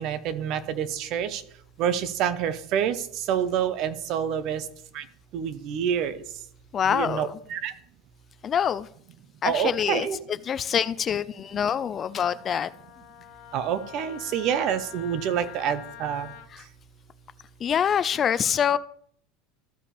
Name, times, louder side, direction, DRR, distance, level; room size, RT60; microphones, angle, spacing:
voice 1, 0.0-1.4 1.8-4.6 4.9-5.0 5.3-6.2 6.8-7.7 9.4-10.2 13.5-16.3, right 8 dB, 50° right, 13 dB, 0.9 m, -27 dB
voice 2, 6.7-7.4 8.4-8.9 9.4-12.7 16.5-16.6 17.6-18.8, left 8 dB, 30° left, 17 dB, 0.3 m, -25 dB
Wind instrument woodwind instrument, 12.2-16.5, left 13 dB, 65° left, 1.0 m, -45 dB
14.5 x 5.0 x 3.4 m, 0.63 s
supercardioid pair, 125°, 0 cm